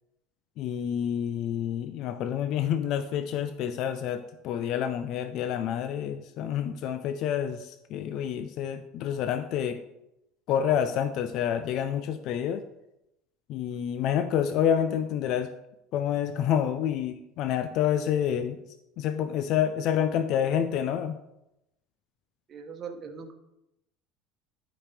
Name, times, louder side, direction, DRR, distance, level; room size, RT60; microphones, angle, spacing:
voice 1, 0.6-9.8 10.5-12.6 13.5-15.5 15.9-18.6 19.0-21.2, left 9 dB, 55° left, 10 dB, 0.5 m, -28 dB
voice 2, 22.5-23.3, right 5 dB, 35° right, 4 dB, 1.1 m, -40 dB
12.0 x 5.0 x 3.4 m, 0.88 s
cardioid pair, 145°, 0 cm